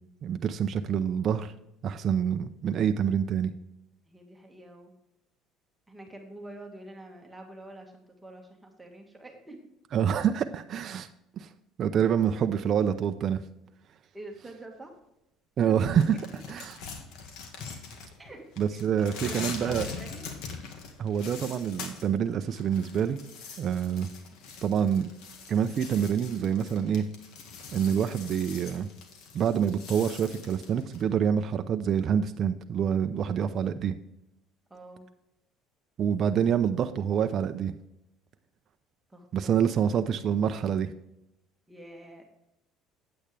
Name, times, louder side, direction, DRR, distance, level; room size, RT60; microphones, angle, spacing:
voice 1, 0.2-1.5 1.8-3.5 9.9-11.1 11.4-11.5 11.8-13.4 15.6-16.2 16.5-16.8 18.6-19.9 21.0-23.2 23.6-24.1 24.6-25.1 25.5-27.0 27.7-28.9 29.3-34.0 36.0-37.7 39.3-40.9, right 8 dB, 45° right, 8 dB, 0.5 m, -26 dB
voice 2, 4.1-4.9 5.9-9.7 14.1-14.9 15.7-15.8 18.2-18.4 18.7-20.3 34.7-35.1 39.1-40.2 41.7-42.2, right 1 dB, 10° right, 2 dB, 1.7 m, -46 dB
sound 1, 16.0-18.3 18.6-22.1 22.4-31.0, left 5 dB, 70° left, 1.8 m, -43 dB
8.7 x 8.5 x 3.3 m, 0.83 s
cardioid pair, 110°, 0 cm